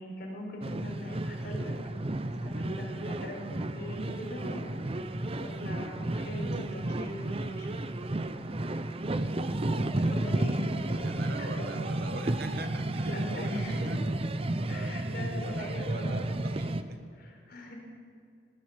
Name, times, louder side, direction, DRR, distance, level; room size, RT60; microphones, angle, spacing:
voice 1, 0.0-1.7 2.2-5.1 5.4-7.9 9.7-11.7 13.0-14.0 14.7-16.3 17.2-17.7, left 1 dB, 60° left, -1 dB, 4.4 m, -41 dB
sound 1, 0.6-16.8, right 1 dB, 30° right, 0.7 m, -32 dB
voice 2, 9.2-10.0 10.8-14.0 14.6-17.0, right 2 dB, 55° right, 7 dB, 1.3 m, -42 dB
18.5 x 10.5 x 7.2 m, 2.3 s
head